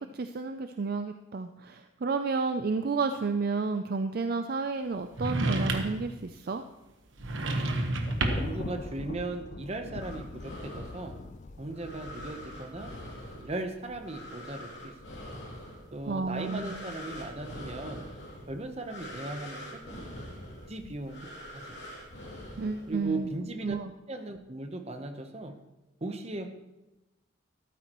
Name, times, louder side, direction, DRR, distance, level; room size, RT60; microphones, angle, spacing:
voice 1, 0.1-6.6 16.1-16.7 22.6-23.3 23.6-23.9, right 4 dB, 50° right, 8 dB, 0.4 m, -31 dB
sound 1, 5.2-6.1 7.2-8.6, right 2 dB, 80° right, 1.2 m, -29 dB
Thunder, 8.1-13.4, left 3 dB, 40° left, 0.4 m, -43 dB
voice 2, 8.2-11.1 11.6-12.9 13.3-15.4 15.9-18.0 18.5-20.2 20.7-21.8 22.9-23.8 24.1-25.6 26.0-26.5, right 2 dB, 30° right, 6 dB, 0.9 m, -38 dB
sound 2, 10.0-23.3, left 1 dB, 65° left, 2.8 m, -44 dB
13.5 x 12.5 x 3.0 m, 1.0 s
head